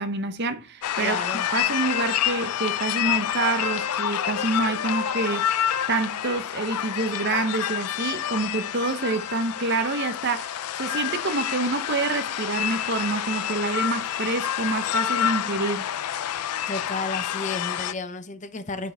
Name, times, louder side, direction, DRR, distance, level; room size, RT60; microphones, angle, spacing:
voice 1, 0.0-1.3 1.5-15.9, right 3 dB, 50° right, 0.8 m, -27 dB
sound 1, 0.8-17.9, left 10 dB, 90° left, 0.4 m, -28 dB
voice 2, 1.0-1.5 16.7-18.9, left 3 dB, 35° left, 0.6 m, -32 dB
8.6 x 4.9 x 3.3 m
head